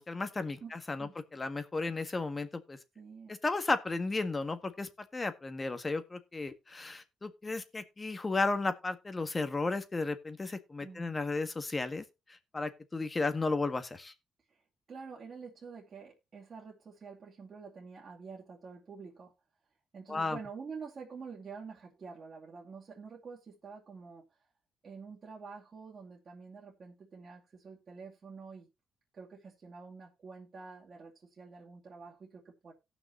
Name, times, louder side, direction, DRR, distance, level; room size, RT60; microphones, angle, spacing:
voice 1, 0.0-2.8 3.3-12.0 12.3-14.1 20.1-20.4, left 3 dB, 25° left, 1.6 m, -34 dB
voice 2, 2.9-3.4 10.8-11.2 14.5-14.6 14.9-19.3 19.9-24.3 24.8-28.7 29.1-32.7, right 5 dB, 45° right, 2.6 m, -48 dB
17.5 x 6.0 x 3.0 m
cardioid pair, 90°, 0 cm